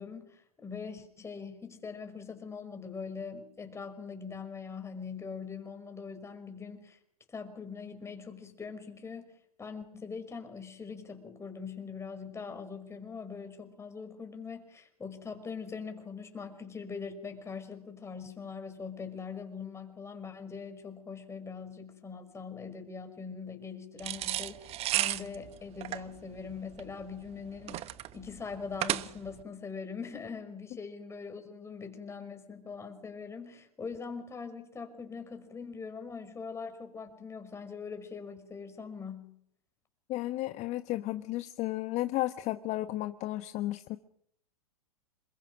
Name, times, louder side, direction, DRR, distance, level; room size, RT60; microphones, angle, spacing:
voice 1, 0.0-7.0 7.3-9.3 9.6-39.3, left 5 dB, 15° left, 6 dB, 5.4 m, -42 dB
sound 1, 24.0-29.4, right 14 dB, 35° right, 1.1 m, -34 dB
voice 2, 40.1-44.0, left 16 dB, 35° left, 10 dB, 1.3 m, -33 dB
28.0 x 21.5 x 6.3 m, 0.72 s
hypercardioid pair, 105°, 19 cm